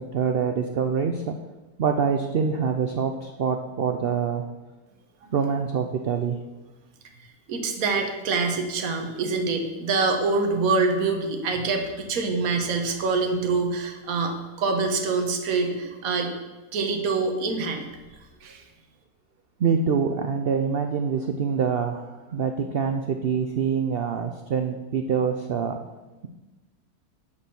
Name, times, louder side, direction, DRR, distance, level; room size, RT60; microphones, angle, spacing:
voice 1, 0.0-1.3 1.8-4.5 5.3-6.4 19.6-25.8, right 6 dB, 80° right, 6 dB, 0.5 m, -25 dB
voice 2, 7.5-16.3 16.7-17.8 18.4-18.6, right 4 dB, 60° right, 3 dB, 1.5 m, -25 dB
9.7 x 4.4 x 7.0 m, 1.2 s
omnidirectional pair, 1.7 m